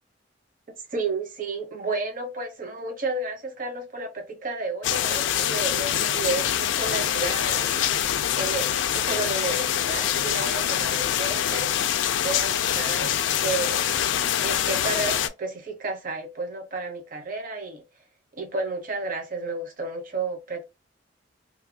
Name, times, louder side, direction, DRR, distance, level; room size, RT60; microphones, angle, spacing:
voice 1, 0.7-7.8 8.4-11.7 12.2-13.9 14.4-17.8 18.3-20.6, right 3 dB, 50° right, 0.9 m, -32 dB
sound 1, 4.8-15.3, left 10 dB, 70° left, 0.3 m, -25 dB
2.7 x 2.3 x 2.6 m
head